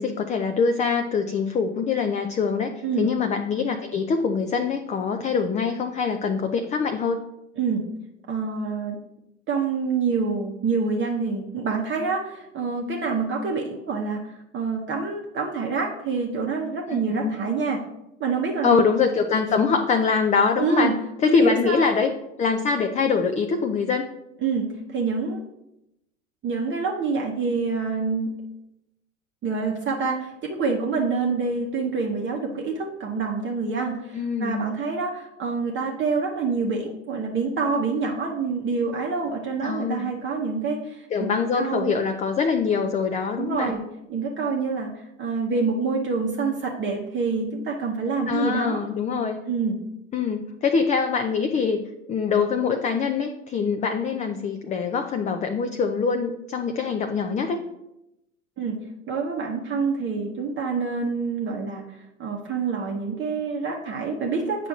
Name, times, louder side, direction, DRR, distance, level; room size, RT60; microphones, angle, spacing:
voice 1, 0.0-7.2 16.9-17.4 18.6-20.9 21.2-22.1 22.4-24.1 34.1-34.7 39.6-40.1 41.1-43.7 48.3-49.4 50.1-51.8 52.1-57.6, left 5 dB, 20° left, 6 dB, 0.4 m, -24 dB
voice 2, 2.8-3.1 7.6-7.8 8.3-9.0 9.5-17.8 18.2-18.8 20.6-21.0 21.2-21.9 24.4-25.4 26.4-28.3 29.4-41.9 43.4-43.8 44.1-48.8 49.4-49.8 58.6-58.8 59.1-64.7, right 4 dB, 30° right, -1 dB, 0.9 m, -27 dB
8.8 x 5.9 x 2.4 m, 0.87 s
hypercardioid pair, 80°, 38 cm